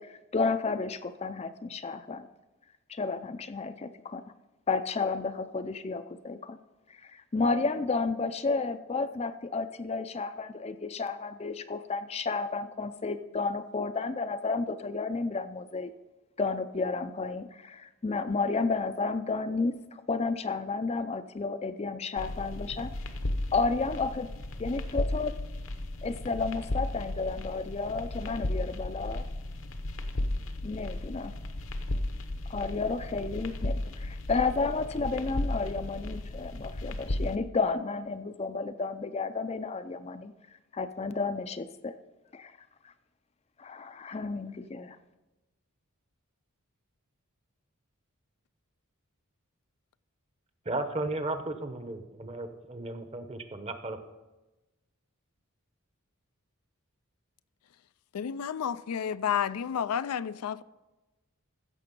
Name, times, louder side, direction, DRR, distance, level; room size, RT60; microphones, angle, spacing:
voice 1, 0.0-2.3 2.9-4.2 4.7-6.6 7.0-15.9 16.4-22.9 23.5-24.3 24.6-25.3 26.0-29.3 30.6-31.4 32.5-40.3 40.7-41.9 42.3-42.5 42.8-42.9 43.6-45.0, left 4 dB, 30° left, 0.4 m, -32 dB
sound 1, 22.2-37.4, left 1 dB, 60° left, 0.9 m, -35 dB
voice 2, 50.6-54.0, right 2 dB, 30° right, 0.8 m, -35 dB
voice 3, 58.1-60.6, left 8 dB, 85° left, 0.4 m, -31 dB
15.5 x 6.6 x 5.3 m
head